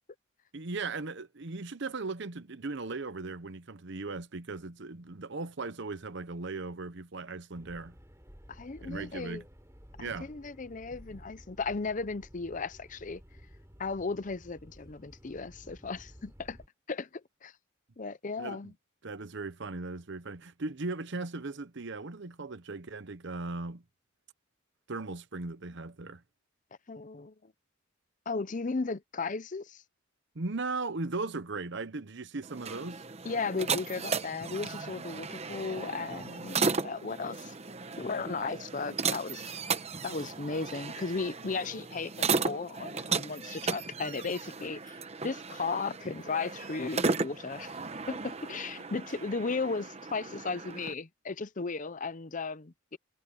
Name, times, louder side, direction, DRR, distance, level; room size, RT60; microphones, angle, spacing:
voice 1, 0.5-8.0 8.8-9.4 10.0-10.3 18.4-18.7 19.0-23.8 24.9-26.2 30.3-33.0, right 3 dB, 60° right, 0.9 m, -38 dB
sound 1, 7.5-16.7, equal, 15° right, 5.4 m, -54 dB
voice 2, 8.5-9.4 10.0-13.2 13.8-16.6 16.9-17.5 18.0-18.7 26.9-27.5 28.3-29.8 33.2-37.5 38.0-39.5 40.0-47.8 48.1-53.0, left 4 dB, 40° left, 0.6 m, -36 dB
sound 2, 32.4-50.9, right 4 dB, 30° right, 0.9 m, -35 dB
head